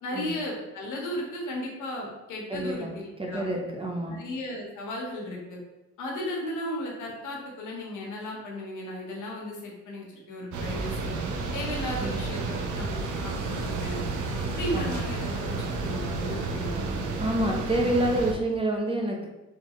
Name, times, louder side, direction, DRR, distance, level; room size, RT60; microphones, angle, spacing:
voice 1, 0.0-3.4 4.1-5.6 6.0-11.1 11.5-14.0 14.5-16.8, left 1 dB, 80° left, -1 dB, 1.3 m, -35 dB
voice 2, 2.5-2.9 3.2-4.2 12.0-12.2 14.7-15.0 17.2-19.3, right 1 dB, 20° right, 0 dB, 0.8 m, -28 dB
sound 1, 10.5-18.3, right 3 dB, 75° right, 0.7 m, -31 dB
4.4 x 3.2 x 3.1 m, 0.98 s
cardioid pair, 90°, 30 cm